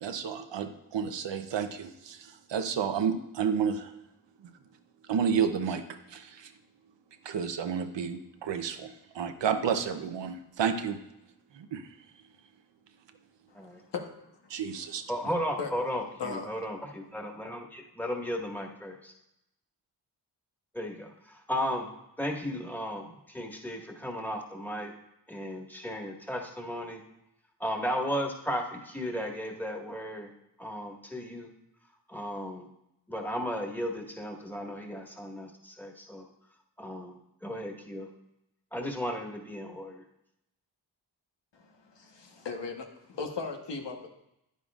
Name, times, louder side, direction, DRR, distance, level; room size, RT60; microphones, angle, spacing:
voice 1, 0.0-3.9 5.1-5.8 6.1-6.5 7.2-11.0 11.5-11.9 14.5-15.0, right 7 dB, 85° right, 7 dB, 0.8 m, -31 dB
voice 2, 13.5-14.0 15.6-15.7 16.2-16.5 41.5-44.1, left 5 dB, 80° left, 3 dB, 1.2 m, -37 dB
voice 3, 15.1-19.1 20.7-21.9 22.2-24.9 25.3-27.0 27.6-30.3 30.6-31.5 32.1-32.7 33.1-36.3 36.8-38.1 38.7-40.0, equal, 5° left, 1 dB, 1.7 m, -35 dB
10.0 x 9.3 x 2.4 m, 0.84 s
cardioid pair, 50°, 42 cm